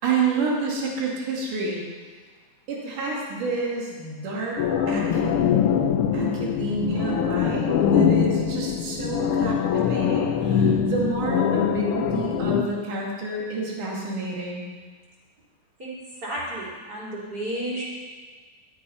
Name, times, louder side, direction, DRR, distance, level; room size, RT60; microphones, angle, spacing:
voice 1, 0.0-1.8 2.7-4.6 4.9-5.4 6.1-14.7, right 3 dB, 75° right, -3 dB, 3.8 m, -29 dB
sound 1, 4.6-12.6, left 7 dB, 85° left, 1.2 m, -23 dB
voice 2, 16.2-17.8, right 1 dB, 30° right, -7 dB, 4.1 m, -32 dB
12.5 x 10.0 x 5.6 m, 1.5 s
omnidirectional pair, 3.6 m